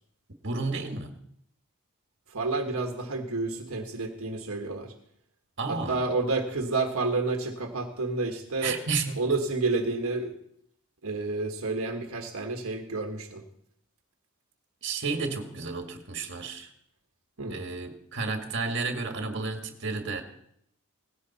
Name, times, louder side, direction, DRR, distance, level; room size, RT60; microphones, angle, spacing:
voice 1, 0.4-1.2 5.6-6.0 8.6-9.2 14.8-16.7 17.5-20.2, right 4 dB, 55° right, 5 dB, 1.9 m, -32 dB
voice 2, 2.3-4.9 5.7-8.8 9.2-10.3 11.0-13.4 17.4-17.6, right 3 dB, 75° right, 3 dB, 1.5 m, -30 dB
18.0 x 16.5 x 4.2 m, 0.70 s
head